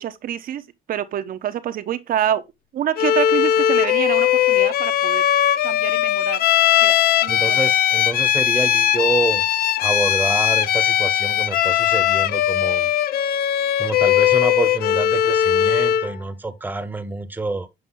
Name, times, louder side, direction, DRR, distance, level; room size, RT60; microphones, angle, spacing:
voice 1, 0.0-2.4 2.7-5.2 5.6-6.4 6.8-7.0 7.2-7.6, right 10 dB, 60° right, 1.1 m, -26 dB
Bowed string instrument, 3.0-16.1, left 11 dB, 65° left, 0.6 m, -19 dB
voice 2, 7.3-9.4 9.8-12.9 13.8-17.7, right 2 dB, 10° right, 1.2 m, -27 dB
7.9 x 5.3 x 3.8 m
cardioid pair, 110°, 17 cm